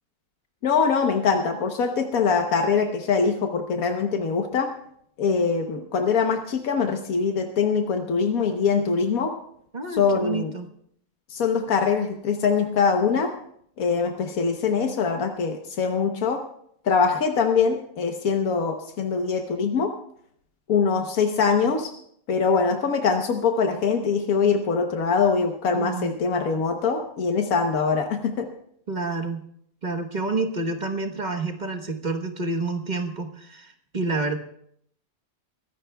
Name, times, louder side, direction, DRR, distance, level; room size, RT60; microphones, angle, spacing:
voice 1, 0.6-4.7 5.2-9.3 9.9-10.5 11.3-13.3 13.8-16.4 16.8-19.9 20.7-21.9 22.3-28.5, left 5 dB, 85° left, 4 dB, 1.5 m, -23 dB
voice 2, 9.7-10.7 25.7-26.1 28.9-29.5 29.8-34.4, right 3 dB, 35° right, 5 dB, 1.2 m, -29 dB
22.5 x 16.0 x 2.3 m, 0.68 s
omnidirectional pair, 1.4 m